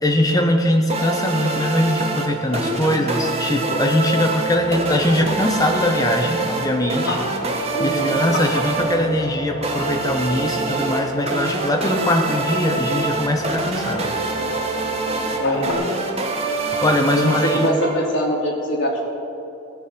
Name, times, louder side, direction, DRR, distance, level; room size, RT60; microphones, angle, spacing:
voice 1, 0.0-7.2 7.8-14.1 16.6-17.7, left 1 dB, 15° left, 3 dB, 1.2 m, -21 dB
Strings n Synths melody., 0.9-18.3, right 3 dB, 30° right, 1.4 m, -25 dB
sound 1, 4.5-15.7, equal, 90° left, 2.9 m, -32 dB
voice 2, 7.7-8.2 15.4-15.8 17.1-19.1, equal, 60° left, -2 dB, 3.1 m, -23 dB
18.5 x 8.5 x 6.3 m, 2.9 s
head